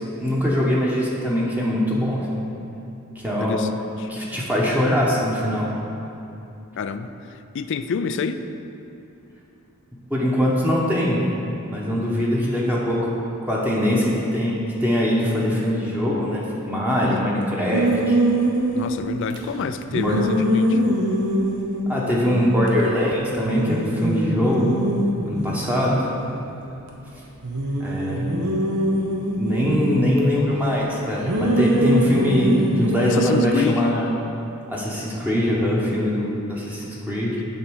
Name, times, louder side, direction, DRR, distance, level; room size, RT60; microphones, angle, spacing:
voice 1, 0.2-2.3 3.1-3.6 4.1-5.7 10.1-11.2 11.6-13.0 13.5-18.2 20.0-20.2 21.9-24.8 25.2-26.1 27.8-28.5 29.3-34.1 34.7-37.4, equal, 10° right, -5 dB, 1.0 m, -22 dB
voice 2, 6.8-7.1 7.5-8.5 12.1-12.3 17.0-17.4 18.7-20.8 33.0-34.0, left 5 dB, 55° left, 10 dB, 0.4 m, -28 dB
sound 1, 17.7-19.4 19.9-22.8 23.1-23.2 23.4-26.9 27.4-30.2 31.2-33.5, right 1 dB, 80° right, 1.0 m, -23 dB
8.9 x 4.2 x 6.3 m, 2.7 s
head